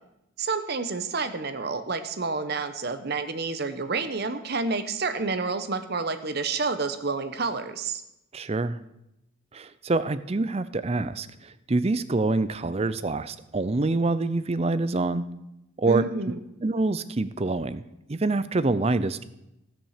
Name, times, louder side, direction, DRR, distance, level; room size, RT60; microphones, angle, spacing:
voice 1, 0.4-8.0 15.9-16.4, right 4 dB, 50° right, 10 dB, 0.9 m, -29 dB
voice 2, 8.3-8.8 9.5-15.2 15.8-16.0 16.6-17.8 18.1-19.2, right 3 dB, 30° right, 14 dB, 0.5 m, -26 dB
16.5 x 6.2 x 6.6 m, 0.87 s
head